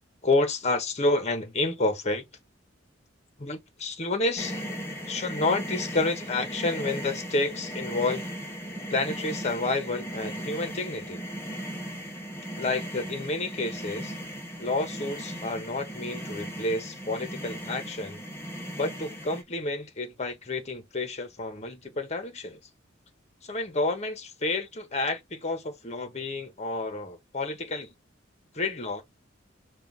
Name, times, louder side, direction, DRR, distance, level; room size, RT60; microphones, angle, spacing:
voice 1, 0.2-2.2 3.4-4.6 5.1-8.2 8.9-11.2 12.6-14.1 14.6-18.2 18.8-22.6 23.4-27.9 28.5-29.0, left 2 dB, 35° left, 1.1 m, -29 dB
sound 1, 4.4-19.4, equal, 15° left, 1.3 m, -37 dB
5.7 x 2.5 x 3.6 m
head